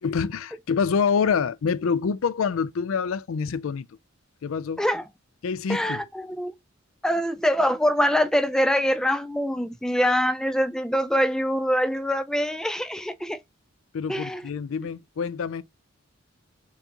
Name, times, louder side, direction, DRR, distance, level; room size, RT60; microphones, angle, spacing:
voice 1, 0.0-3.9 4.4-4.8 5.4-6.0 13.9-15.6, left 6 dB, 80° left, 0.4 m, -26 dB
voice 2, 5.7-6.5 7.0-13.4 14.1-14.4, equal, 5° left, 0.3 m, -24 dB
4.4 x 3.9 x 2.8 m
head